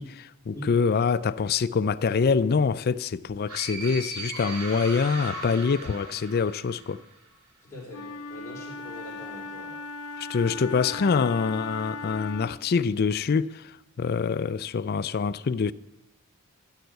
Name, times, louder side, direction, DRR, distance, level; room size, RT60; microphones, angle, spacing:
voice 1, 0.0-7.0 10.2-15.7, left 5 dB, 45° left, 0.4 m, -25 dB
sound 1, 3.5-7.1, right 2 dB, 75° right, 2.8 m, -38 dB
voice 2, 5.6-6.0 7.6-9.8, left 1 dB, 10° left, 4.6 m, -43 dB
Wind instrument woodwind instrument, 7.9-12.7, left 3 dB, 90° left, 0.6 m, -38 dB
15.0 x 6.4 x 8.1 m
head